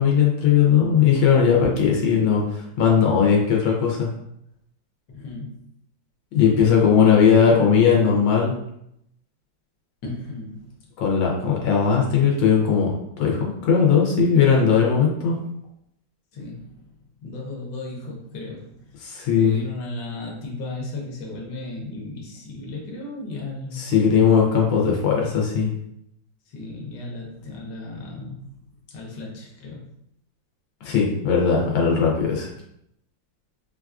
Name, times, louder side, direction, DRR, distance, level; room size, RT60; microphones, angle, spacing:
voice 1, 0.0-4.1 6.3-8.5 11.0-12.9 13.2-15.4 19.0-19.6 23.7-25.7 30.8-32.5, left 6 dB, 90° left, -2 dB, 1.4 m, -18 dB
voice 2, 5.1-5.5 10.0-10.9 16.3-19.0 19.4-23.8 26.5-28.6 28.9-29.9, left 2 dB, 70° left, -1 dB, 1.4 m, -35 dB
4.3 x 2.3 x 2.3 m, 0.77 s
omnidirectional pair, 2.0 m